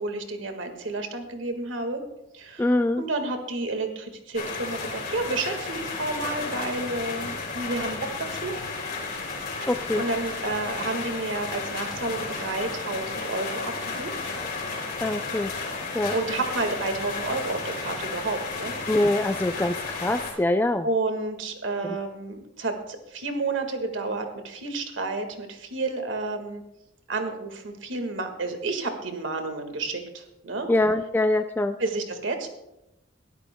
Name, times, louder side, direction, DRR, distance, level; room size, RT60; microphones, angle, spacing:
voice 1, 0.0-2.0 2.3-8.6 9.6-9.7 10.0-14.1 16.1-18.8 20.8-26.6 27.1-30.7 31.8-32.5, right 3 dB, 85° right, 5 dB, 1.7 m, -30 dB
voice 2, 2.6-3.0 9.7-10.0 15.0-15.5 15.9-16.1 18.9-19.8 20.0-20.9 30.7-31.7, left 1 dB, 10° left, 7 dB, 0.3 m, -23 dB
sound 1, 4.3-20.3, left 4 dB, 50° left, 3.0 m, -33 dB
20.5 x 13.0 x 2.2 m, 0.90 s
head